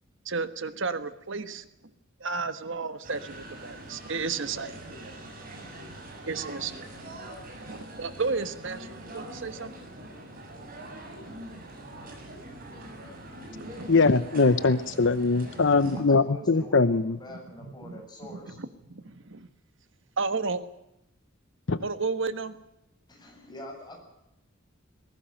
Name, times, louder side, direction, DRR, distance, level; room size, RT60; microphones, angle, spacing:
voice 1, 0.2-1.7 2.2-4.8 6.3-6.8 7.7-9.7 13.5-13.9 15.6-16.3 16.6-16.8 17.3-18.0 18.3-19.5 20.2-20.6 21.8-22.6, right 4 dB, 65° right, 12 dB, 1.4 m, -33 dB
sound 1, 3.0-16.0, right 1 dB, 45° right, 7.3 m, -43 dB
voice 2, 13.9-17.2 21.7-21.8, left 4 dB, 65° left, 14 dB, 0.8 m, -22 dB
voice 3, 16.1-18.6 23.1-24.0, left 1 dB, 20° left, 1 dB, 8.0 m, -44 dB
21.0 x 17.5 x 9.0 m, 0.85 s
head